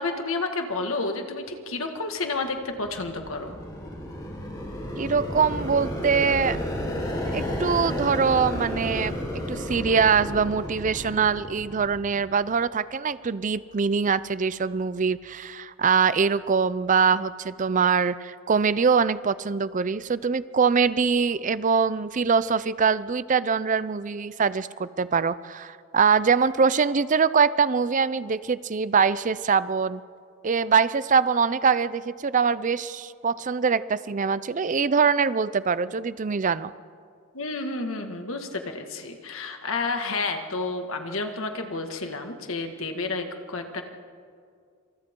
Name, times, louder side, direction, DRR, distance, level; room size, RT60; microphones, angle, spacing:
voice 1, 0.0-3.6 37.3-43.8, left 3 dB, 70° left, 4 dB, 1.9 m, -30 dB
sound 1, 2.6-12.4, equal, 20° left, 4.5 m, -32 dB
voice 2, 5.0-6.6 7.3-9.2 9.5-30.0 30.4-36.7, right 5 dB, 35° right, 16 dB, 0.5 m, -23 dB
27.5 x 27.0 x 3.8 m, 2.2 s
head